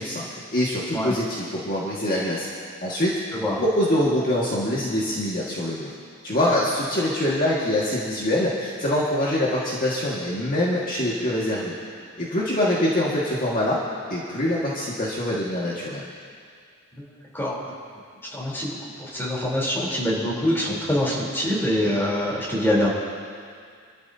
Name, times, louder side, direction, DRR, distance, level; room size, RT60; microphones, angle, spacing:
voice 1, 0.0-2.5 2.8-3.2 3.6-5.9 6.2-11.7 12.2-13.8 14.1-16.0, left 1 dB, 40° left, -6 dB, 1.9 m, -24 dB
voice 2, 18.3-22.9, left 1 dB, 10° left, -6 dB, 3.7 m, -24 dB
26.5 x 13.0 x 2.8 m, 2.2 s
head